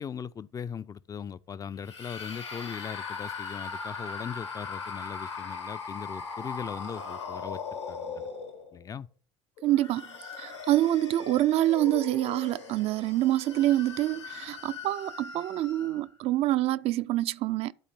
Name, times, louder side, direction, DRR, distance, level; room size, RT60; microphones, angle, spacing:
voice 1, 0.0-7.6 7.9-8.3 8.7-9.1, left 7 dB, 25° left, 0.4 m, -39 dB
sound 1, 1.8-8.9 9.6-16.1, left 5 dB, 80° left, 1.5 m, -39 dB
voice 2, 9.6-10.0 10.4-17.7, right 15 dB, 45° right, 0.4 m, -26 dB
11.5 x 4.3 x 5.2 m
figure-of-eight pair, 60°, 15 cm